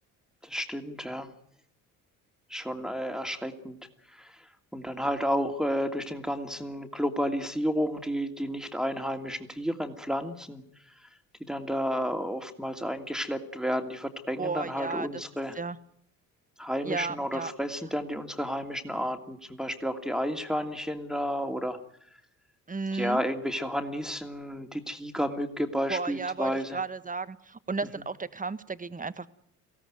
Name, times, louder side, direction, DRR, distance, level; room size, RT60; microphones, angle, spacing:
voice 1, 0.4-1.3 2.5-3.8 4.1-10.6 11.0-11.1 11.4-15.6 16.6-21.8 22.9-26.8, equal, ahead, 5 dB, 2.7 m, -31 dB
voice 2, 14.4-15.1 15.5-15.8 16.8-17.5 22.7-23.2 25.9-29.3, right 4 dB, 20° right, 13 dB, 1.6 m, -33 dB
25.0 x 17.0 x 9.3 m, 0.70 s
hypercardioid pair, 50°, 43 cm